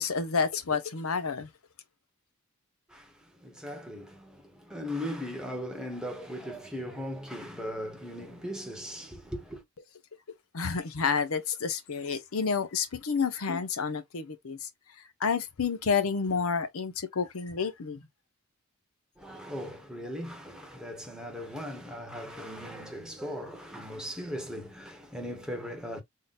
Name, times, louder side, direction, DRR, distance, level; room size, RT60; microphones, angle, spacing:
voice 1, 0.0-1.5 10.5-14.6 15.2-18.0, left 5 dB, 80° left, 0.7 m, -29 dB
voice 2, 2.9-9.6 19.2-26.0, equal, 5° right, 0.9 m, -38 dB
3.8 x 2.1 x 3.9 m
head